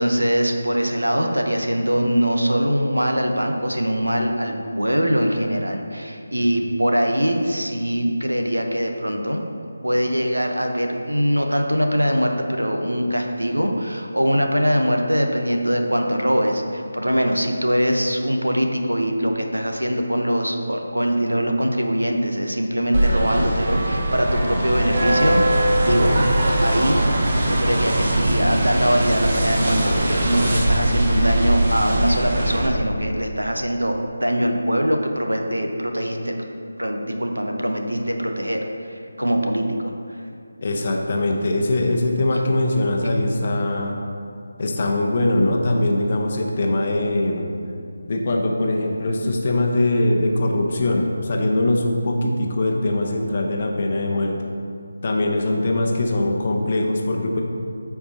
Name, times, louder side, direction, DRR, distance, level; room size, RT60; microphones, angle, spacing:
voice 1, 0.0-9.4 9.8-26.2 26.6-27.0 27.5-36.4 36.8-38.6 38.9-39.7, equal, 80° right, 3 dB, 0.9 m, -22 dB
sound 1, 22.9-32.7, right 1 dB, 40° right, 1.0 m, -21 dB
voice 2, 25.9-26.2 40.6-43.9 44.6-47.5 48.1-54.4 55.0-57.4, left 1 dB, 35° left, 1 dB, 0.8 m, -22 dB
14.0 x 4.7 x 2.8 m, 2.4 s
figure-of-eight pair, 155°, 0 cm